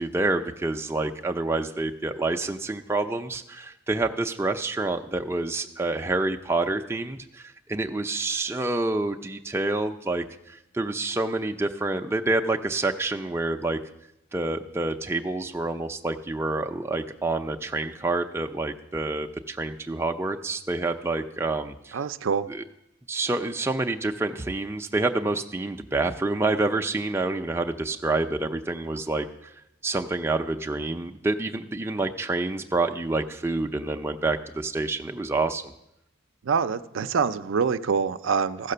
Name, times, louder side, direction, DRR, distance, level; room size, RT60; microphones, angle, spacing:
voice 1, 0.0-13.8 14.3-22.0 22.5-22.6 23.1-29.5 29.8-35.6, right 2 dB, 10° right, 4 dB, 0.4 m, -28 dB
voice 2, 21.9-22.5 36.4-38.7, right 6 dB, 75° right, 11 dB, 0.4 m, -25 dB
14.5 x 5.9 x 6.6 m, 0.83 s
head